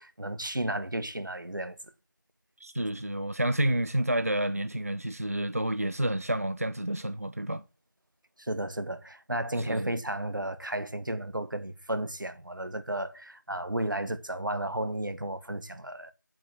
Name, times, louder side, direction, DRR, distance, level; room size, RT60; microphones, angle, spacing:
voice 1, 0.0-1.8 8.4-16.1, right 1 dB, 80° right, 1.4 m, -33 dB
voice 2, 2.6-7.6 9.6-9.9, right 1 dB, 45° right, 0.5 m, -29 dB
8.1 x 7.5 x 5.7 m
figure-of-eight pair, 180°, 11 cm